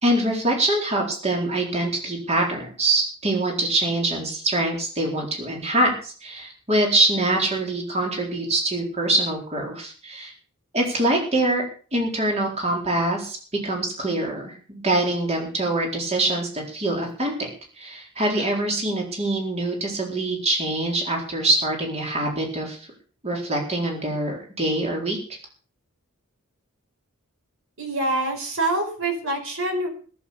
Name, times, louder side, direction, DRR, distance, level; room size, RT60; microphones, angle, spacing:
voice 1, 0.0-10.3 10.7-11.6 11.9-13.4 13.6-17.5 17.8-22.9 23.2-25.2, right 2 dB, 30° right, 0 dB, 4.3 m, -24 dB
voice 2, 27.8-29.9, right 2 dB, 65° right, 4 dB, 5.2 m, -25 dB
18.0 x 8.6 x 7.1 m, 0.41 s
head